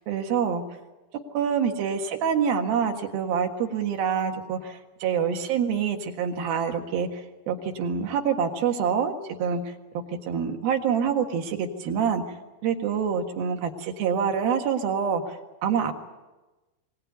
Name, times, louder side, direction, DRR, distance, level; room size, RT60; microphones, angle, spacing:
voice 1, 0.1-0.6 1.3-9.1 9.4-9.6 10.2-12.2 12.6-15.9, right 7 dB, 80° right, 4 dB, 3.6 m, -26 dB
23.5 x 18.0 x 9.4 m, 1.1 s
omnidirectional pair, 4.2 m